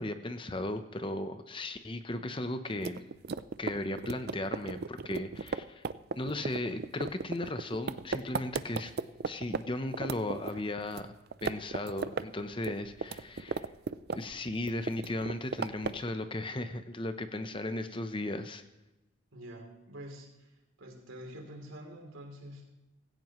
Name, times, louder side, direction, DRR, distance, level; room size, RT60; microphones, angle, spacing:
voice 1, 0.0-3.1 3.6-5.8 6.1-8.9 9.3-11.1 11.4-13.7 14.1-18.6, left 1 dB, 25° left, 9 dB, 0.8 m, -36 dB
sound 1, 2.8-9.6 9.9-11.1 11.3-12.3 12.5-14.4 14.7-16.1, right 4 dB, 50° right, 0.4 m, -35 dB
voice 2, 19.3-20.5 20.8-22.6, equal, 80° right, 2 dB, 3.2 m, -46 dB
16.5 x 16.0 x 3.1 m, 0.99 s
head